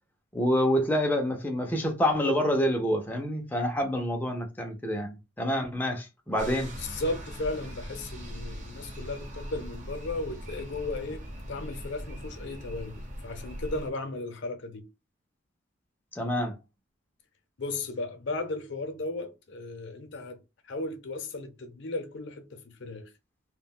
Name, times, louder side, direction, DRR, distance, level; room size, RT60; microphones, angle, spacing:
voice 1, 0.3-6.7 16.2-16.5, equal, 10° left, 0.4 m, -27 dB
sound 1, 6.4-13.9, equal, 40° right, 0.7 m, -40 dB
voice 2, 6.8-11.2 11.5-14.9 17.6-20.4 20.6-23.1, left 2 dB, 65° left, 0.6 m, -35 dB
2.3 x 2.1 x 3.5 m
head